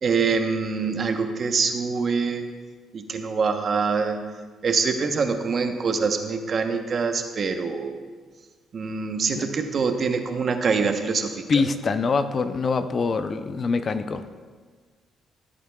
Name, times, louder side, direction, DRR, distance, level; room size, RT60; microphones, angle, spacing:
voice 1, 0.0-2.5 2.9-4.2 4.6-8.0 8.7-11.6, right 5 dB, 50° right, 6 dB, 0.9 m, -25 dB
voice 2, 11.5-14.2, left 4 dB, 45° left, 10 dB, 0.5 m, -24 dB
15.5 x 8.3 x 2.3 m, 1.5 s
cardioid pair, 90°, 0 cm